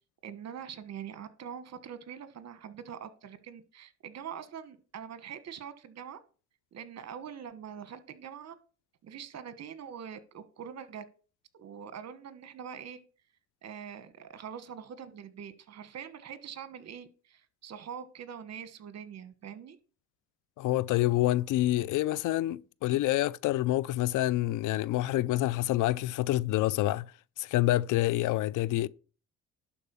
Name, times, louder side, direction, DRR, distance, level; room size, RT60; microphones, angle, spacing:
voice 1, 0.2-6.2 6.7-8.5 9.0-11.0 11.6-13.0 13.6-19.8, right 8 dB, 60° right, 1.4 m, -44 dB
voice 2, 20.6-27.1 27.4-28.9, left 15 dB, 85° left, 0.5 m, -27 dB
11.5 x 4.4 x 7.0 m
cardioid pair, 90°, 30 cm